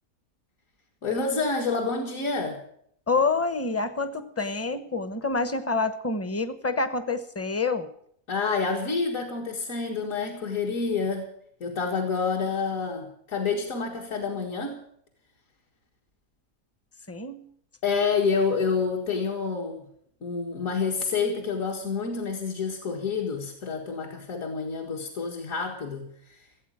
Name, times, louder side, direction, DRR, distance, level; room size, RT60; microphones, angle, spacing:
voice 1, 1.0-2.6 8.3-11.3 11.6-14.8 17.8-19.9 20.2-26.4, left 5 dB, 65° left, -1 dB, 2.2 m, -28 dB
voice 2, 3.1-7.9 17.1-17.5, left 3 dB, 15° left, 12 dB, 0.7 m, -27 dB
16.5 x 8.3 x 8.8 m, 0.68 s
omnidirectional pair, 1.5 m